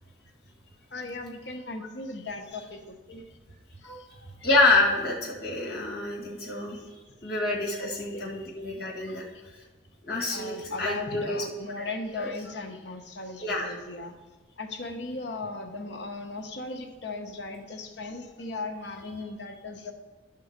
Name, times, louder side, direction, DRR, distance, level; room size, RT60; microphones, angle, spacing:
voice 1, 0.9-3.2 3.8-3.9 4.4-4.5 7.8-8.3 9.0-9.2 10.3-14.1 14.6-19.9, left 3 dB, 75° left, 4 dB, 1.0 m, -37 dB
voice 2, 4.4-6.8 7.2-9.2 10.1-11.4 11.8-11.9 12.2-12.3 13.4-13.7, left 2 dB, 60° left, -2 dB, 1.8 m, -27 dB
10.0 x 3.8 x 6.5 m, 1.2 s
head